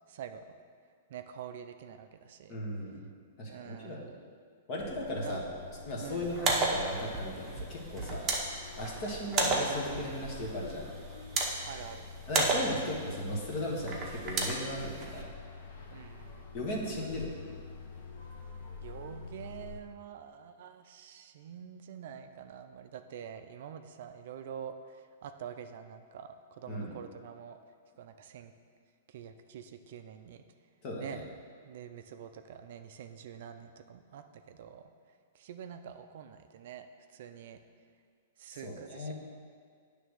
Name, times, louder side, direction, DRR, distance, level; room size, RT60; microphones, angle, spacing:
voice 1, 0.1-0.4 1.1-2.6 3.5-4.2 5.2-5.5 6.0-6.3 11.7-12.1 15.9-16.5 18.8-25.0 25.2-27.6 28.0-28.5 29.1-30.4 31.0-34.8 35.3-36.9 37.1-37.6 38.4-39.1, right 8 dB, 55° right, 8 dB, 0.4 m, -46 dB
voice 2, 2.5-2.9 3.4-4.0 4.7-5.5 5.8-8.3 8.8-10.9 12.3-15.3 16.5-17.4 26.7-26.9 30.8-31.2 38.6-39.1, left 1 dB, 35° left, -2 dB, 1.3 m, -36 dB
sound 1, 4.8-19.8, left 5 dB, 55° left, 0.9 m, -47 dB
sound 2, 6.2-15.2, right 3 dB, 20° right, 0.9 m, -34 dB
9.0 x 3.4 x 6.4 m, 2.1 s
hypercardioid pair, 165°, 0 cm